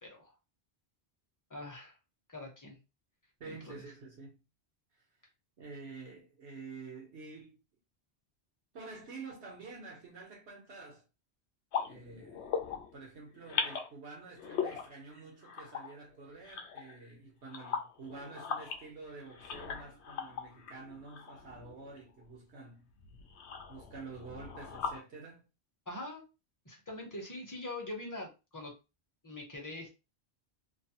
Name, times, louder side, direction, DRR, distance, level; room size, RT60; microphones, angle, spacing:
voice 1, 0.0-0.3 1.5-1.9 2.3-2.8 3.4-3.7 25.9-26.2 26.6-28.7 29.2-29.9, left 2 dB, 20° left, 0.7 m, -43 dB
voice 2, 3.4-4.4 5.6-7.6 8.7-11.0 11.8-22.9 23.7-25.5, right 4 dB, 80° right, 1.3 m, -49 dB
sound 1, 11.7-13.0 13.3-13.9 14.3-17.1 17.5-22.3 22.9-25.0, left 6 dB, 80° left, 0.8 m, -40 dB
3.1 x 2.0 x 2.8 m
omnidirectional pair, 1.1 m